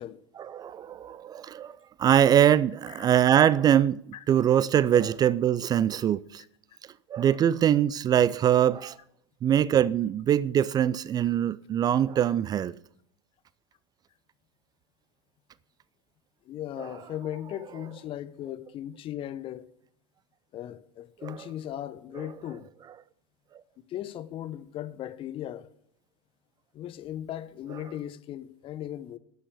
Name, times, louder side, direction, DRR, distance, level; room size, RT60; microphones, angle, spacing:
voice 1, 0.4-4.0 4.3-6.4 7.1-9.0 9.4-12.7 16.8-16.9 21.2-21.5, right 10 dB, 25° right, 0.4 m, -23 dB
voice 2, 16.5-19.7 20.5-22.7 23.9-25.7 26.7-29.2, left 12 dB, 35° left, 0.9 m, -37 dB
12.5 x 8.7 x 6.9 m
figure-of-eight pair, 85°, 15 cm